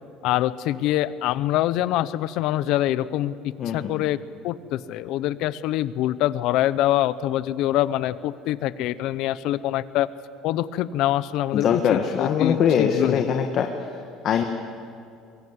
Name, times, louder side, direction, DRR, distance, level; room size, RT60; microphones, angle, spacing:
voice 1, 0.2-4.2 4.4-10.1 10.4-13.2, left 14 dB, 55° left, 17 dB, 0.7 m, -25 dB
voice 2, 3.6-4.0 11.5-13.9 14.2-14.4, left 7 dB, 35° left, 5 dB, 1.3 m, -22 dB
22.5 x 22.5 x 8.1 m, 2.4 s
cardioid pair, 180°, 0 cm